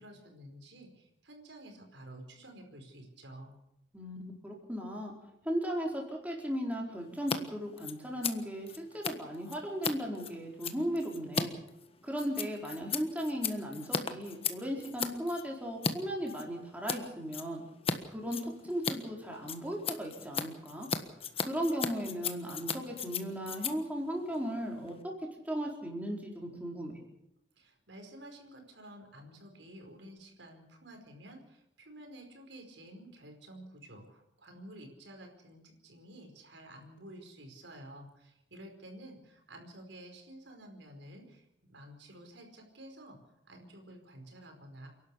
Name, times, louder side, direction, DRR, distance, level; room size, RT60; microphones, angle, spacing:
voice 1, 0.0-3.5 27.6-44.9, right 1 dB, 85° right, 4 dB, 5.0 m, -51 dB
voice 2, 3.9-5.1 5.4-8.7 8.9-11.5 12.0-17.6 18.1-20.9 21.4-25.1 25.4-27.0, equal, 10° right, -1 dB, 4.4 m, -36 dB
Scissors, 7.2-7.4 7.6-15.9 16.3-17.0 17.3-18.0 18.2-25.0, left 5 dB, 35° left, 1.4 m, -37 dB
28.5 x 12.0 x 8.5 m, 0.83 s
head